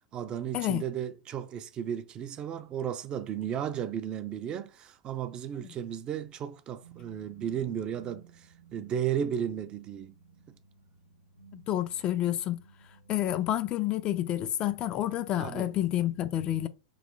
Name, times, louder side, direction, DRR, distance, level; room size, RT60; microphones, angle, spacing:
voice 1, 0.1-8.3 8.7-10.1 15.4-15.7, right 9 dB, 30° right, 0.4 m, -34 dB
sound 1, 6.8-13.3, right 5 dB, 85° left, 0.9 m, -56 dB
voice 2, 11.5-12.6 13.1-16.7, left 13 dB, 35° left, 0.4 m, -29 dB
3.2 x 3.0 x 3.7 m
figure-of-eight pair, 95°, 3 cm